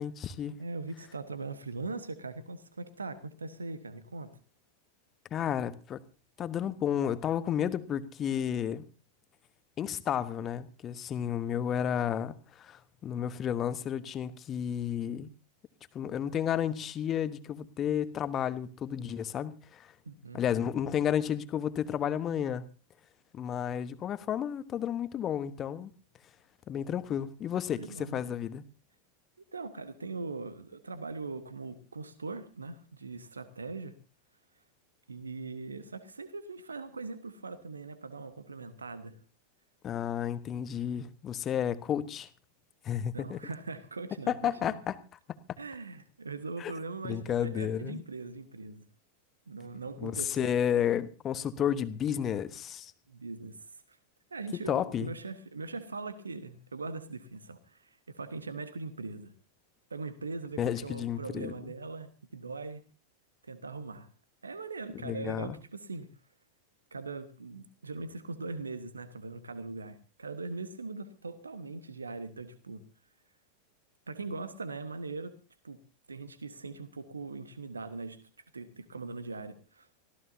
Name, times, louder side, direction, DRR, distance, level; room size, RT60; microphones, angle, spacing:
voice 1, 0.0-0.5 5.3-6.0 6.4-8.8 9.8-15.3 15.9-19.9 20.3-22.7 23.3-25.9 26.7-28.6 39.8-42.3 42.8-43.4 44.3-45.0 45.3-45.4 46.6-46.7 47.0-48.0 50.0-52.9 54.7-55.1 60.6-61.5 65.0-65.6, left 9 dB, 30° left, 15 dB, 1.1 m, -32 dB
voice 2, 0.6-4.3 20.0-20.4 27.8-28.2 29.5-33.9 35.1-39.2 43.1-44.8 45.6-48.8 49.5-50.5 53.1-54.0 54.3-59.3 59.9-62.8 63.4-64.1 64.4-66.1 66.9-72.8 74.1-75.3 75.6-75.8 76.1-78.2 78.5-79.9, right 3 dB, 75° right, 13 dB, 1.3 m, -41 dB
24.5 x 16.0 x 2.7 m, 0.33 s
figure-of-eight pair, 90°, 0 cm